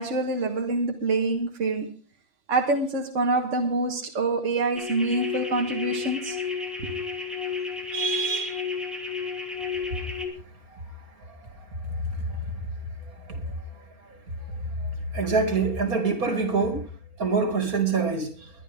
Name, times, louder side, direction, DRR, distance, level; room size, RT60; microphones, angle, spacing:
voice 1, 0.0-1.9 2.5-6.4 6.8-6.9 7.9-8.6, right 3 dB, 60° right, 1.8 m, -26 dB
sound 1, 4.7-10.3, left 6 dB, ahead, 2.7 m, -32 dB
voice 2, 15.1-16.8 17.2-18.5, right 4 dB, 80° right, 3.0 m, -25 dB
22.0 x 10.5 x 3.6 m
omnidirectional pair, 1.5 m